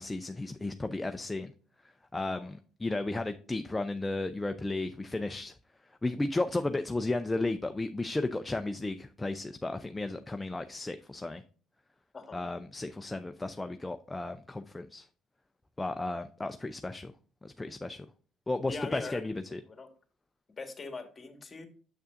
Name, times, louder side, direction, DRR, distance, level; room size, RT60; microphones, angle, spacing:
voice 1, 0.0-1.5 2.1-5.5 6.0-11.4 12.3-15.1 15.8-17.1 17.4-18.1 18.5-19.6, left 2 dB, 15° left, 0.5 m, -34 dB
voice 2, 2.2-2.5 12.1-12.4 18.7-19.9 20.6-21.7, left 4 dB, 30° left, 1.5 m, -42 dB
6.9 x 6.6 x 2.5 m
supercardioid pair, 75°, 0 cm